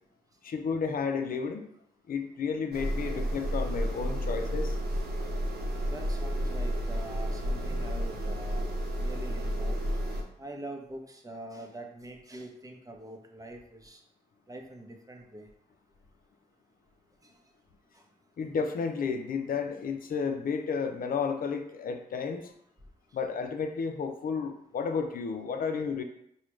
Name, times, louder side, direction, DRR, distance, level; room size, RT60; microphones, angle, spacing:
voice 1, 0.4-1.7 2.1-4.8 18.4-22.5 23.1-26.0, left 5 dB, 50° left, 6 dB, 0.6 m, -32 dB
sound 1, 2.7-10.2, equal, 60° right, 0.8 m, -31 dB
voice 2, 5.8-8.7 9.0-9.8 10.4-14.0 14.5-15.5 17.2-17.3, right 1 dB, 20° right, 2 dB, 0.9 m, -44 dB
4.8 x 2.3 x 3.2 m, 0.74 s
hypercardioid pair, 45°, 18 cm